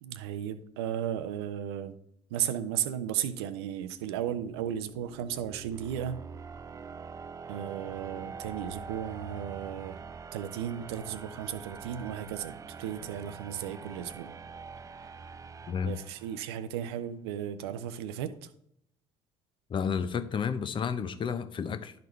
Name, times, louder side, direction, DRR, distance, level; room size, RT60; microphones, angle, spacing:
voice 1, 0.0-2.0 2.3-6.2 7.5-10.0 10.3-14.3 15.8-18.5, right 10 dB, 70° right, 10 dB, 0.6 m, -35 dB
sound 1, 3.9-16.8, right 5 dB, 25° right, 0.4 m, -45 dB
voice 2, 19.7-21.9, left 7 dB, 35° left, 9 dB, 0.7 m, -31 dB
11.5 x 4.0 x 3.2 m, 0.71 s
figure-of-eight pair, 55°, 14 cm